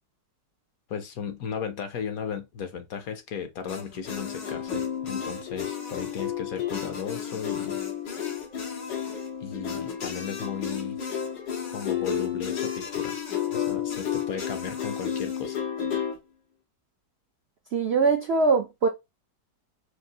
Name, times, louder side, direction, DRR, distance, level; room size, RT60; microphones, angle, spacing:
voice 1, 0.9-7.8 9.4-11.0 11.7-13.2 13.5-15.6, left 7 dB, 65° left, 1.0 m, -35 dB
sound 1, 3.7-16.2, left 8 dB, 90° left, 2.0 m, -31 dB
voice 2, 17.7-18.9, right 4 dB, 80° right, 0.5 m, -22 dB
4.4 x 2.4 x 3.9 m
omnidirectional pair, 1.9 m